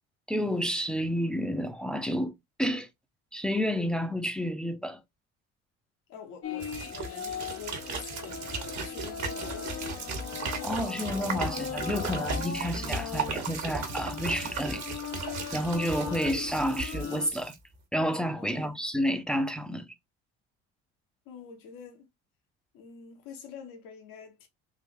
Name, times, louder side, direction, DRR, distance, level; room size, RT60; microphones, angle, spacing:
voice 1, 0.3-2.9 3.3-5.0 10.6-14.8 15.5-17.5 17.9-19.9, equal, ahead, 0.7 m, -30 dB
voice 2, 6.1-10.2 18.4-18.8 21.2-22.1 22.7-24.5, left 6 dB, 70° left, 1.4 m, -47 dB
sound 1, 6.4-17.3, left 7 dB, 40° left, 0.7 m, -39 dB
sound 2, 6.6-17.5, right 4 dB, 50° right, 1.4 m, -36 dB
3.8 x 2.7 x 2.7 m
hypercardioid pair, 65°, 35 cm